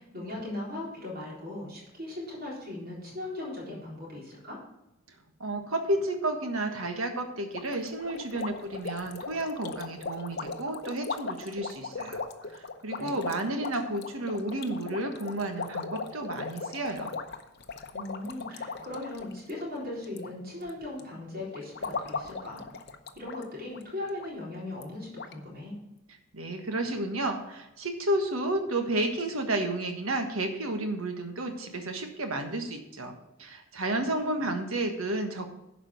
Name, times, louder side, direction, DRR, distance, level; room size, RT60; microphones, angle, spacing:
voice 1, 0.0-4.6 12.9-13.2 17.9-22.6 23.2-25.8 33.9-34.5, left 2 dB, 45° right, -4 dB, 3.9 m, -39 dB
voice 2, 5.4-12.2 12.5-17.1 26.3-35.5, right 1 dB, 80° right, 5 dB, 1.5 m, -31 dB
sound 1, 7.5-20.3 20.6-21.0 21.5-23.4 23.7-23.8 24.2-24.3 24.8-24.9 25.2-25.3, left 4 dB, 50° left, 0.7 m, -38 dB
11.5 x 5.0 x 6.3 m, 0.88 s
head